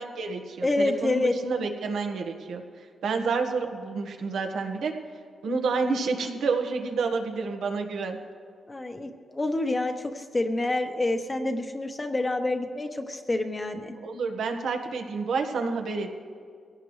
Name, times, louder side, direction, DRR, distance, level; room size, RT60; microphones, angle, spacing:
voice 1, 0.0-2.6 3.0-4.9 5.4-8.2 14.0-16.1, right 4 dB, 85° right, 3 dB, 1.6 m, -29 dB
voice 2, 0.6-1.3 8.7-13.9, left 2 dB, 20° left, 5 dB, 1.1 m, -27 dB
23.0 x 17.0 x 3.3 m, 2.1 s
wide cardioid pair, 140°, 0 cm